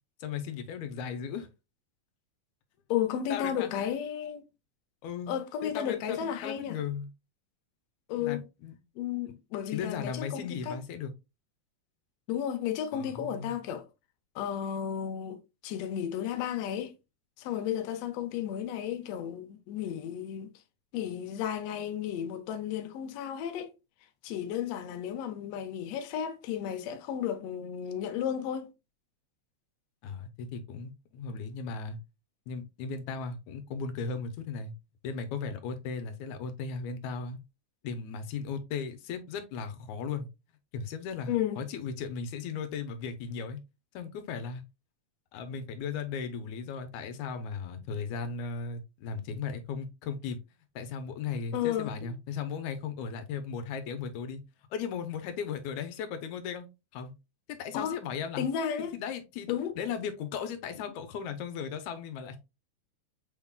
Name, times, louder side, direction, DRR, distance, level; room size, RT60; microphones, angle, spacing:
voice 1, 0.2-1.5 3.3-3.9 5.0-5.4 5.6-7.1 8.2-8.8 9.7-11.1 12.9-13.6 30.0-32.0 32.5-34.7 35.0-37.4 37.8-40.3 40.7-43.6 43.9-44.6 45.3-50.4 50.8-54.4 54.7-56.7 56.9-57.1 57.5-58.5 58.9-59.5 59.8-62.4, left 6 dB, 85° left, 2.1 m, -36 dB
voice 2, 2.9-4.5 5.3-6.8 8.1-8.5 9.0-10.8 12.3-13.9 14.4-16.9 17.4-20.5 20.9-23.7 24.2-28.7 41.3-41.7 51.5-52.1 57.7-58.0 58.4-59.0 59.5-59.8, left 9 dB, 70° left, 1.7 m, -33 dB
6.3 x 3.6 x 2.3 m
omnidirectional pair, 3.3 m